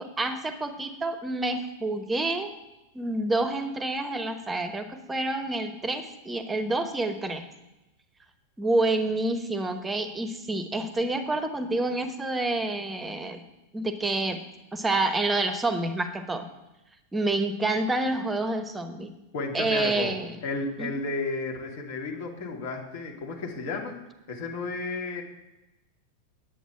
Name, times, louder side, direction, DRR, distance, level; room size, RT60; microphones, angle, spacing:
voice 1, 0.0-2.5 2.9-7.4 8.6-13.4 13.7-14.4 14.7-16.5 17.1-19.1 19.5-20.4 20.8-20.9, right 2 dB, 10° right, 9 dB, 1.0 m, -28 dB
voice 2, 19.3-20.2 20.4-24.0 24.3-25.2, left 3 dB, 50° left, 1 dB, 2.3 m, -32 dB
9.3 x 8.2 x 5.9 m, 0.98 s
figure-of-eight pair, 90°, 0 cm